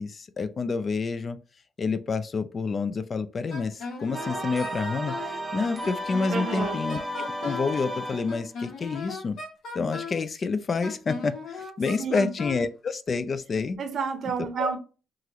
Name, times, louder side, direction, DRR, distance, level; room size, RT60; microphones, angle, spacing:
voice 1, 0.0-1.4 1.8-9.4 9.7-13.8 14.4-14.7, left 4 dB, 40° left, 0.3 m, -29 dB
Wind instrument woodwind instrument, 3.5-5.4 5.8-7.7 8.3-10.2 10.8-12.7, left 4 dB, 70° left, 1.2 m, -37 dB
sound 1, 4.1-8.4, right 1 dB, 15° right, 0.6 m, -34 dB
voice 2, 6.3-6.8 12.0-12.3 13.8-14.8, right 6 dB, 60° right, 0.6 m, -30 dB
2.9 x 2.5 x 2.8 m
cardioid pair, 90°, 0 cm